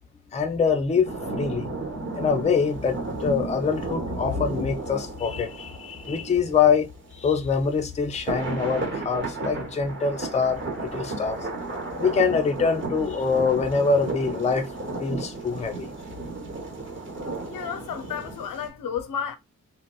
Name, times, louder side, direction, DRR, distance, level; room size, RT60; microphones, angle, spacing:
voice 1, 0.3-1.7 2.2-11.4 12.0-14.7 15.0-15.9, left 5 dB, 20° left, 0.4 m, -24 dB
sound 1, 1.0-7.4 8.1-18.7, right 3 dB, 35° right, 1.0 m, -34 dB
voice 2, 17.4-19.4, left 7 dB, 85° left, 0.6 m, -32 dB
3.7 x 2.0 x 2.2 m
wide cardioid pair, 155°, 32 cm